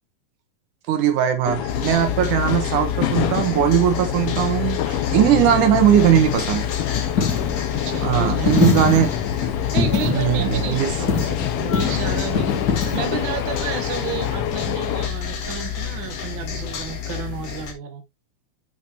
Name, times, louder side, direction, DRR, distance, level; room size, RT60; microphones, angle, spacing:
voice 1, 0.9-6.7 8.0-9.1 10.0-10.9, right 10 dB, 85° right, 2.7 m, -19 dB
sound 1, 1.5-15.1, left 10 dB, 75° left, 1.3 m, -27 dB
sound 2, 1.7-17.7, left 8 dB, 60° left, 2.2 m, -29 dB
Coin (dropping), 5.8-14.4, left 4 dB, 35° left, 2.5 m, -26 dB
voice 2, 7.8-9.0 9.7-18.0, right 7 dB, 50° right, 1.7 m, -32 dB
7.2 x 5.9 x 2.9 m
omnidirectional pair, 3.5 m